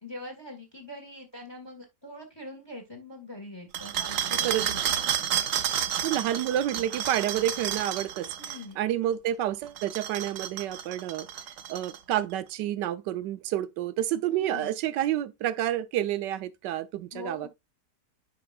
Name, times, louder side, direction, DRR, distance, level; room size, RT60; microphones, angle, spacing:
voice 1, 0.0-5.1 8.4-8.8 14.3-14.7 17.1-17.5, left 1 dB, 15° left, 1.6 m, -43 dB
sound 1, 3.7-8.6 9.7-12.1, right 9 dB, 60° right, 0.9 m, -31 dB
voice 2, 6.0-11.3 11.7-17.5, right 12 dB, 80° right, 1.3 m, -29 dB
10.0 x 5.1 x 2.4 m
omnidirectional pair, 1.9 m